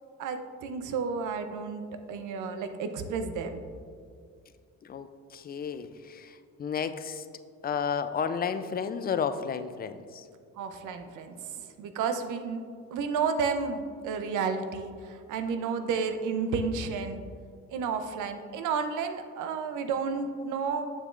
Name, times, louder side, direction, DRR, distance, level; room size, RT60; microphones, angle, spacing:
voice 1, 0.2-3.6 10.6-17.2 17.7-20.9, right 5 dB, 80° right, 8 dB, 0.6 m, -32 dB
voice 2, 4.8-7.3 7.6-10.3, left 6 dB, 30° left, 11 dB, 0.4 m, -32 dB
7.4 x 6.6 x 2.5 m, 2.3 s
cardioid pair, 90°, 30 cm